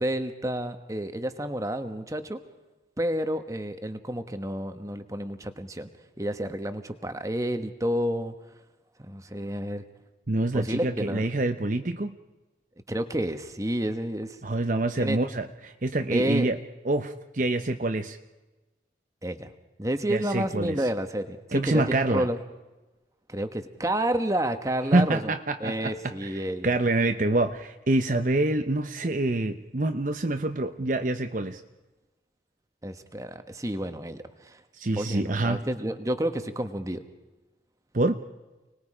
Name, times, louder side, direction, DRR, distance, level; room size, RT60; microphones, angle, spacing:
voice 1, 0.0-2.4 3.0-5.9 6.2-8.3 9.0-9.8 10.5-11.3 12.9-14.4 15.0-15.2 16.1-16.5 19.2-19.5 19.8-22.4 23.3-25.3 25.6-26.8 32.8-34.6 35.0-37.1, right 1 dB, 20° right, 8 dB, 1.2 m, -30 dB
voice 2, 10.3-12.2 14.4-16.6 16.8-18.2 20.1-20.9 21.5-22.3 24.9-31.6 34.7-35.6 37.9-38.2, right 2 dB, 45° right, 7 dB, 0.8 m, -26 dB
29.5 x 20.5 x 5.0 m, 1.1 s
head